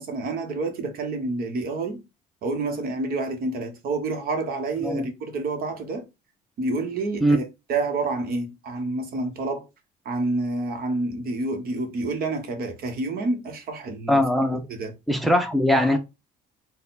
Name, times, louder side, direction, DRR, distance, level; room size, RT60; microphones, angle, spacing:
voice 1, 0.0-2.0 2.4-6.1 6.6-9.7 10.0-14.2 14.7-14.9, right 3 dB, 60° right, 1.1 m, -28 dB
voice 2, 14.1-14.6 15.1-16.0, equal, ahead, 0.6 m, -20 dB
3.8 x 2.2 x 4.1 m
cardioid pair, 110°, 17 cm